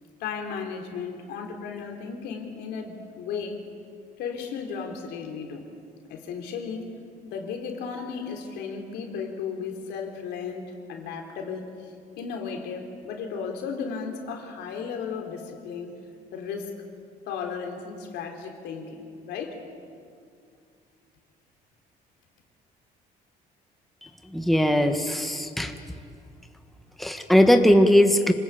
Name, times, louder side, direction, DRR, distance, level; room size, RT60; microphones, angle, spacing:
voice 1, 0.2-3.6 4.2-5.6 6.1-6.9 7.2-15.9 16.3-16.7 17.3-19.6, left 6 dB, 85° left, 3 dB, 3.6 m, -35 dB
voice 2, 24.3-25.7 27.0-28.3, equal, ahead, 5 dB, 1.5 m, -19 dB
26.5 x 19.5 x 8.6 m, 2.3 s
cardioid pair, 110°, 17 cm